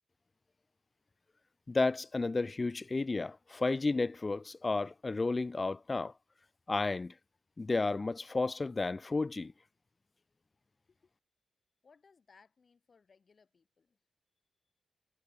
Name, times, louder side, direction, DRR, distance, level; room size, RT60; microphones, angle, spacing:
voice 1, 1.7-6.1 6.7-7.1 7.6-9.5, left 3 dB, 30° left, 0.4 m, -32 dB
voice 2, 11.8-14.0, left 5 dB, 45° left, 7.9 m, -65 dB
cardioid pair, 105°, 0 cm